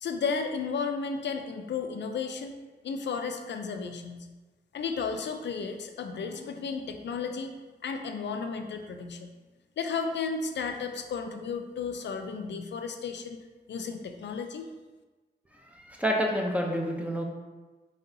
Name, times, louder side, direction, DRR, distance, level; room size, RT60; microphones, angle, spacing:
voice 1, 0.0-2.6 2.8-4.3 4.7-7.5 7.8-9.3 9.8-13.4 13.7-14.7, left 5 dB, 75° left, 6 dB, 0.4 m, -33 dB
voice 2, 15.7-17.2, equal, 5° right, 1 dB, 0.7 m, -28 dB
4.6 x 3.8 x 2.7 m, 1.2 s
cardioid pair, 65°, 18 cm